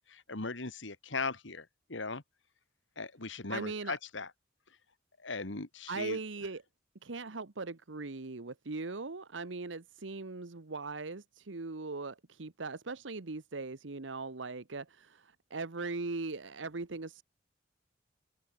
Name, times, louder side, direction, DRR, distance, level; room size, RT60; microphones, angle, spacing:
voice 1, 0.0-2.2 3.0-4.3 5.2-6.2, left 4 dB, 80° left, 2.3 m, -38 dB
voice 2, 3.5-4.0 5.9-6.6 7.0-17.2, right 3 dB, 80° right, 1.1 m, -39 dB
open air
head